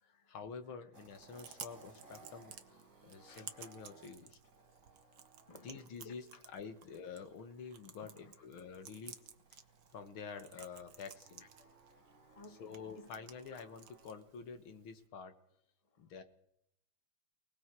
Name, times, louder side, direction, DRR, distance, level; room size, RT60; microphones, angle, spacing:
voice 1, 0.0-4.4 5.6-6.2 6.5-9.2 9.5-9.6 9.9-11.4 12.6-15.3 16.0-16.2, left 5 dB, 85° left, 9 dB, 2.4 m, -48 dB
sound 1, 0.9-14.2, right 3 dB, 40° right, 4.9 m, -63 dB
Chewing mastication, 1.1-15.1, right 8 dB, 60° right, 1.7 m, -56 dB
voice 2, 3.1-3.4 4.4-4.5 5.5-6.4 8.0-8.5 10.6-10.7 11.4-13.1 13.5-13.6 15.9-16.0, left 3 dB, 20° left, 7 dB, 1.4 m, -59 dB
29.5 x 19.0 x 4.7 m, 0.77 s
omnidirectional pair, 2.2 m